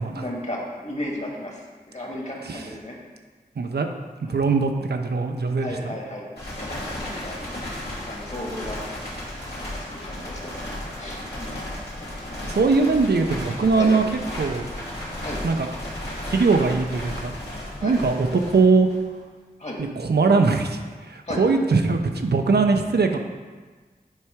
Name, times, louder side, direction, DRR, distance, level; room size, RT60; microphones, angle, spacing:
voice 1, 0.1-3.0 4.2-4.4 5.5-6.3 6.6-7.4 7.7-8.8 9.7-10.6 11.0-11.7 12.5-12.9 13.7-13.9 15.2-15.4 17.8-18.0 19.6-19.8 21.2-21.5, left 1 dB, 45° left, -2 dB, 1.4 m, -35 dB
voice 2, 3.6-3.9 4.3-6.0 12.4-14.0 14.4-14.7 15.4-15.7 16.2-17.3 17.8-18.9 20.0-20.8 21.1-23.2, right 4 dB, 85° right, 5 dB, 0.5 m, -21 dB
sound 1, 6.4-19.2, left 1 dB, 90° left, 1.8 m, -34 dB
7.4 x 3.4 x 4.8 m, 1.4 s
wide cardioid pair, 60°, 17 cm